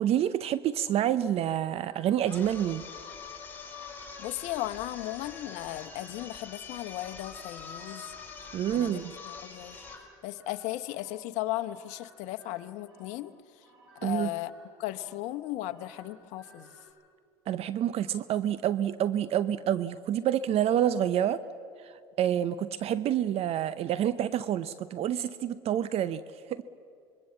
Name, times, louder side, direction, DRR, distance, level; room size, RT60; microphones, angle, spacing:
voice 1, 0.0-2.8 8.5-9.1 14.0-14.3 17.5-21.4 21.8-26.2 26.5-26.6, right 10 dB, 50° right, 14 dB, 0.7 m, -28 dB
sound 1, 0.9-16.9, right 2 dB, 85° right, 7.0 m, -59 dB
sound 2, 2.2-10.1, left 5 dB, 15° left, 4.7 m, -45 dB
voice 2, 4.2-13.6 13.9-14.5 14.8-16.7, left 16 dB, 65° left, 10 dB, 1.0 m, -36 dB
26.0 x 22.5 x 7.4 m, 2.3 s
hypercardioid pair, 80°, 13 cm